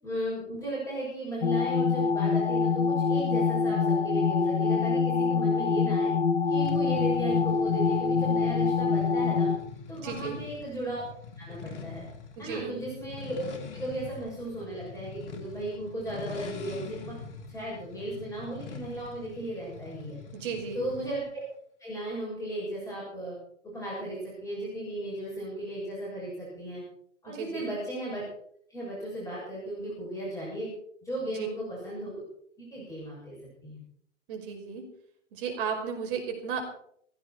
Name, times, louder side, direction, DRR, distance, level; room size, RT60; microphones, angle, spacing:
voice 1, 0.0-6.1 6.5-9.5 9.9-11.0 11.4-12.1 12.4-13.5 13.7-17.2 17.5-20.2 20.7-21.4 21.8-23.4 23.7-26.8 27.2-28.2 28.7-30.7 31.0-32.1 32.6-33.4 33.6-33.8, right 1 dB, 10° left, -6 dB, 7.4 m, -36 dB
sound 1, 1.4-9.6, left 5 dB, 65° left, 1.9 m, -25 dB
sound 2, 6.6-21.3, left 5 dB, 50° left, 3.1 m, -44 dB
voice 2, 10.0-10.4 12.4-12.7 20.3-20.8 27.3-27.7 31.4-31.5 34.3-34.8 35.3-36.7, right 6 dB, 45° right, 3 dB, 5.5 m, -34 dB
17.5 x 16.5 x 4.5 m, 0.66 s
hypercardioid pair, 125°, 37 cm